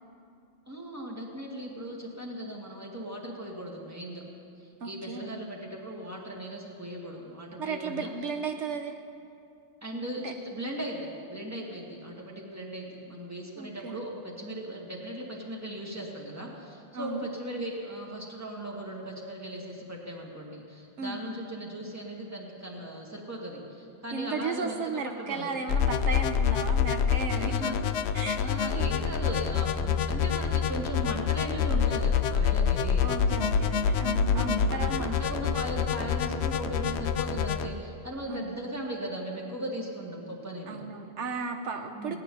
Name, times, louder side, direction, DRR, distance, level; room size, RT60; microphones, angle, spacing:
voice 1, 0.7-4.2 4.6-8.1 9.8-25.5 27.3-27.8 28.4-33.1 34.3-40.8 41.9-42.2, right 1 dB, 15° right, -2 dB, 2.0 m, -38 dB
voice 2, 4.8-5.3 7.6-9.0 10.2-10.3 13.6-14.0 16.9-17.3 21.0-21.2 24.1-27.5 28.1-28.4 28.7-28.9 33.0-35.1 38.3-38.5 40.7-42.2, right 5 dB, 80° right, 6 dB, 1.1 m, -34 dB
sound 1, 25.7-37.7, left 7 dB, 70° left, 0.8 m, -27 dB
17.5 x 5.9 x 9.9 m, 2.5 s
omnidirectional pair, 1.2 m